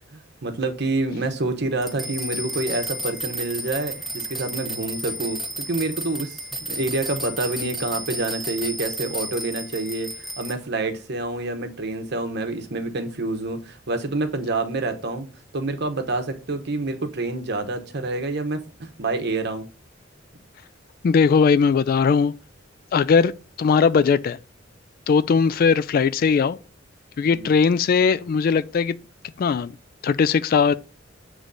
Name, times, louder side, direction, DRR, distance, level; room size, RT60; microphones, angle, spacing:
voice 1, 0.1-15.3 15.5-19.7 27.2-27.5, right 2 dB, 60° right, 1.0 m, -27 dB
sound 1, 1.8-10.5, right 1 dB, ahead, 0.8 m, -32 dB
voice 2, 21.0-22.3 22.9-23.3 23.6-24.4 25.1-26.6 27.2-29.0 29.4-29.8 30.0-30.7, left 5 dB, 50° left, 0.3 m, -19 dB
8.0 x 3.2 x 3.9 m
head